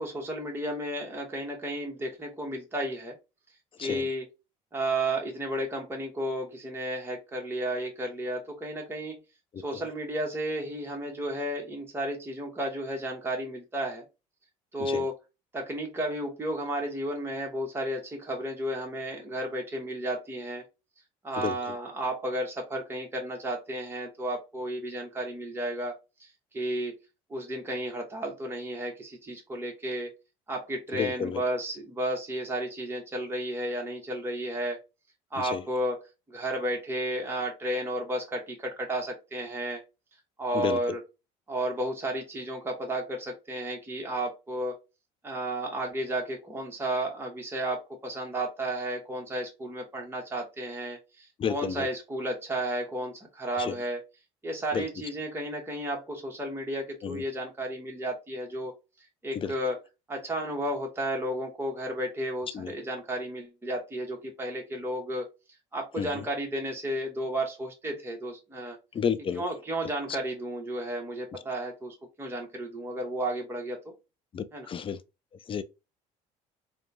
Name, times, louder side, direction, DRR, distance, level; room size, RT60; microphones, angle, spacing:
voice 1, 0.0-3.2 3.8-4.3 4.7-9.2 9.6-14.0 14.7-15.1 15.5-20.6 21.2-25.9 26.2-27.0 27.3-30.1 30.5-34.8 35.3-36.0 36.3-39.8 40.4-41.0 41.5-44.8 45.2-54.0 54.4-58.7 59.2-59.8 60.1-65.3 65.7-68.8 69.3-73.8 74.5-74.7, right 1 dB, 15° right, 1.0 m, -33 dB
voice 2, 21.4-21.7 30.9-31.4 35.4-35.6 40.5-41.0 51.4-51.9 53.6-53.8 54.7-54.8 57.0-57.2 59.3-59.5 62.5-62.7 66.0-66.2 68.9-69.4 74.3-75.0 75.5-75.6, left 7 dB, 30° left, 0.4 m, -31 dB
2.9 x 2.2 x 2.4 m
hypercardioid pair, 70°, 17 cm